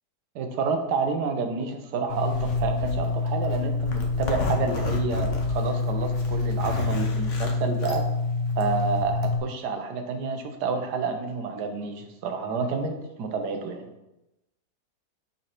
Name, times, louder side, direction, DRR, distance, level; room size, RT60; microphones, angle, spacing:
voice 1, 0.3-8.0 8.6-13.9, right 4 dB, 80° right, 5 dB, 1.4 m, -29 dB
Zipper (clothing), 2.1-9.4, left 3 dB, 55° left, 1.1 m, -26 dB
7.3 x 3.9 x 4.5 m, 0.94 s
omnidirectional pair, 1.7 m